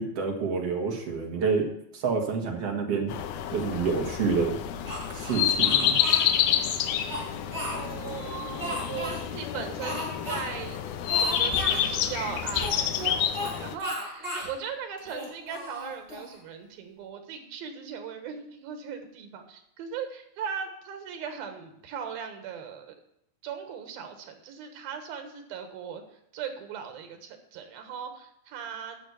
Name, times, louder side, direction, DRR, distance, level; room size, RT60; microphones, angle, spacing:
voice 1, 0.0-1.7 1.9-3.1 3.5-4.6 5.1-6.0, right 5 dB, 50° right, 2 dB, 2.3 m, -28 dB
sound 1, 3.1-13.8, left 9 dB, 75° left, 2.1 m, -28 dB
Speech, 4.8-6.2 6.8-8.1 8.6-9.2 9.8-10.4 10.7-10.8 11.1-11.8 12.5-13.5 13.8-14.5 15.0-16.3, equal, 10° right, 4.9 m, -34 dB
voice 2, 7.7-10.8 11.2-22.9 23.4-26.0 26.3-29.0, right 7 dB, 90° right, 6 dB, 3.2 m, -38 dB
11.0 x 6.6 x 8.3 m, 0.76 s
omnidirectional pair, 4.1 m